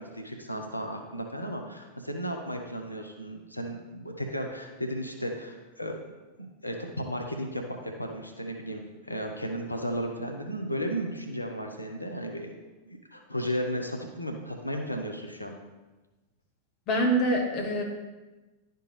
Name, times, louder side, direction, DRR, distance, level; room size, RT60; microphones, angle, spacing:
voice 1, 0.0-6.0 6.6-12.5 12.9-15.5, equal, 85° left, 3 dB, 0.7 m, -34 dB
voice 2, 16.9-17.8, right 1 dB, 35° left, 0 dB, 1.6 m, -25 dB
11.0 x 4.5 x 3.2 m, 1.2 s
figure-of-eight pair, 90°, 0 cm